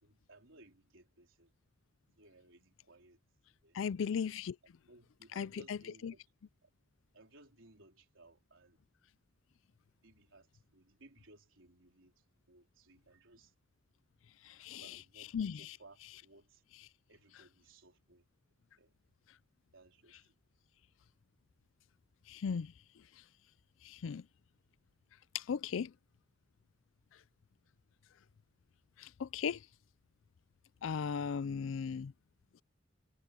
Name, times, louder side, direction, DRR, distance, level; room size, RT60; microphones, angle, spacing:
voice 1, 0.0-1.5 2.2-3.2 3.6-4.0 4.9-6.2 6.6-6.7 7.1-8.8 10.0-10.5 10.7-12.1 12.5-13.5 14.5-16.6 17.1-18.2 18.8-18.9 19.7-20.2, right 2 dB, 85° right, 3.9 m, -61 dB
voice 2, 3.7-4.6 5.3-6.1 14.4-15.8 16.0-16.1 16.7-16.9 17.3-17.4 20.1-20.2 22.3-22.7 23.8-24.3 25.3-25.9 29.0-29.7 30.8-32.1, left 6 dB, 80° left, 0.4 m, -37 dB
head